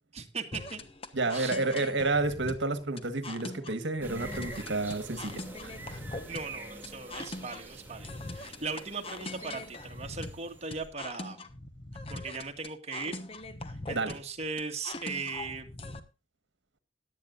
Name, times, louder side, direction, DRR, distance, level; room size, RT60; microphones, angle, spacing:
voice 1, 0.1-0.8 1.3-1.5 6.3-11.4 12.1-13.2 13.9-15.7, right 4 dB, 35° right, 1.8 m, -38 dB
sound 1, 0.5-16.0, left 2 dB, 30° left, 1.1 m, -42 dB
voice 2, 1.1-6.0 13.9-14.2, right 3 dB, 65° right, 1.5 m, -31 dB
sound 2, 4.0-10.9, right 2 dB, 10° right, 3.0 m, -46 dB
17.5 x 11.5 x 2.6 m
head